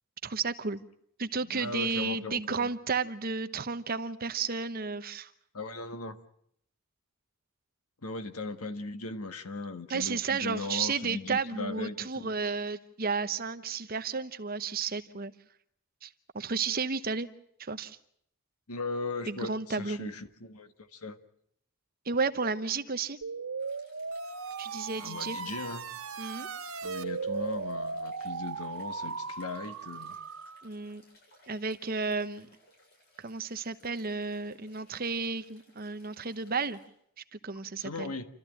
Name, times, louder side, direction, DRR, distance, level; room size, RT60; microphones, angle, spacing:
voice 1, 0.2-0.8 1.2-5.3 9.9-15.3 16.0-16.1 16.3-17.3 17.6-18.0 19.3-20.1 22.0-23.2 24.6-25.4 26.2-26.5 30.6-31.0 31.5-32.5 33.2-36.8 37.3-38.1, right 4 dB, 40° right, 11 dB, 0.9 m, -32 dB
voice 2, 1.4-2.7 5.5-6.2 8.0-12.3 18.7-21.2 25.0-25.8 26.8-30.2 37.8-38.3, left 3 dB, 90° left, 9 dB, 1.6 m, -38 dB
sound 1, 23.2-30.7, right 4 dB, 80° right, 1.6 m, -37 dB
sound 2, 23.6-36.9, left 1 dB, 45° left, 7.8 m, -64 dB
28.5 x 13.5 x 9.0 m, 0.69 s
head